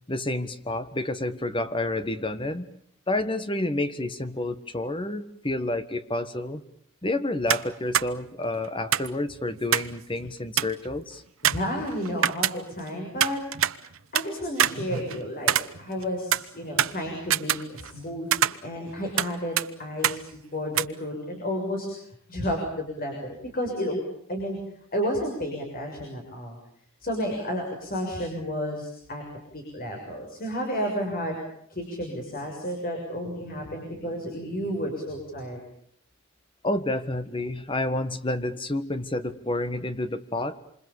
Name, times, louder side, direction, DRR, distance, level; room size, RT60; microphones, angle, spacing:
voice 1, 0.1-2.7 3.1-6.6 7.0-11.2 36.6-40.6, left 2 dB, 25° left, 10 dB, 1.6 m, -29 dB
sound 1, 7.5-7.7 7.9-8.1 8.9-10.0 10.2-10.3 10.6-10.9 11.4-12.9 13.2-14.3 14.6-16.0 16.3-18.0 18.3-19.3 19.6-19.7 20.0-20.2 20.7-20.8, right 10 dB, 70° right, 1.0 m, -25 dB
voice 2, 11.4-13.4 14.1-18.3 18.6-20.2 20.5-22.0 22.3-24.0 24.3-24.6 24.9-26.6 27.0-29.2 29.5-31.4 31.7-35.6, equal, 40° left, 2 dB, 6.5 m, -31 dB
27.5 x 27.5 x 7.1 m, 0.68 s
head